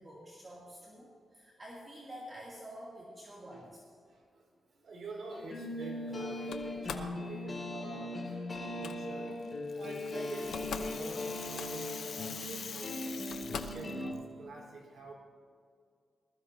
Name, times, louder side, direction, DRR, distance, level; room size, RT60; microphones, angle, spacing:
voice 1, 0.0-3.8 12.0-12.1, equal, 25° right, -6 dB, 2.7 m, -48 dB
voice 2, 3.2-3.7 4.1-8.5 8.8-9.4 9.8-12.9 13.5-15.1, right 3 dB, 70° right, -3 dB, 4.1 m, -47 dB
sound 1, 5.3-14.1, left 1 dB, 30° left, 2.4 m, -39 dB
Slam, 6.5-7.2 8.5-9.0 10.1-10.2 10.4-11.0 11.3-12.0 12.7-12.8 13.3-13.9, left 6 dB, 90° left, 0.8 m, -42 dB
Rattle (instrument), 9.4-14.2, left 6 dB, 60° left, 0.5 m, -45 dB
20.0 x 14.5 x 2.8 m, 2.2 s
cardioid pair, 110°, 0 cm